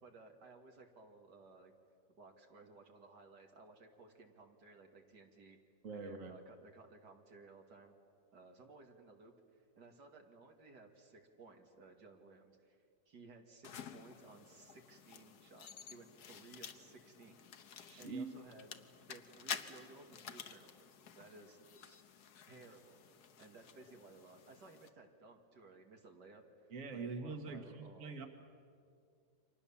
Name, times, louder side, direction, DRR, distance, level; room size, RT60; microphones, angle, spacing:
voice 1, 0.0-1.7 2.1-5.6 5.9-7.9 8.3-17.4 18.0-18.7 19.1-22.0 22.4-26.4 26.9-28.3, right 3 dB, 85° right, 3 dB, 2.8 m, -58 dB
voice 2, 5.8-6.4 17.9-18.3 26.7-28.3, right 4 dB, 50° right, 5 dB, 2.0 m, -44 dB
sound 1, 13.6-24.9, left 7 dB, 70° left, 1.6 m, -51 dB
29.5 x 25.0 x 7.2 m, 2.3 s
omnidirectional pair, 1.8 m